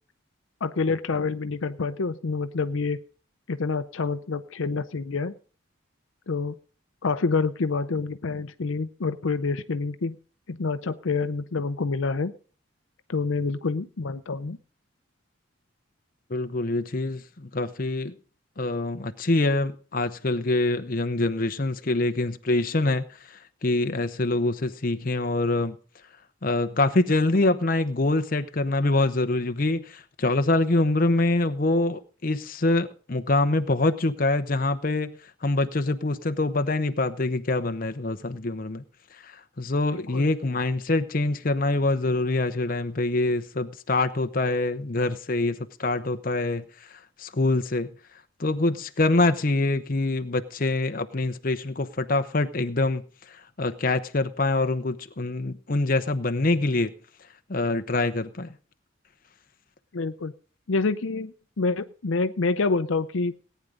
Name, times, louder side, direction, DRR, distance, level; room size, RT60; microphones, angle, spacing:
voice 1, 0.6-3.0 3.5-5.3 6.3-6.5 7.0-10.2 10.5-12.3 13.1-14.6 39.9-40.3 59.9-60.3 60.7-63.3, left 4 dB, 75° left, 0.6 m, -27 dB
voice 2, 16.3-18.1 18.6-25.8 26.4-35.1 35.4-38.8 39.2-47.9 48.4-53.0 53.3-56.9 57.5-58.5, left 2 dB, 45° left, 0.8 m, -25 dB
18.0 x 9.3 x 3.8 m
head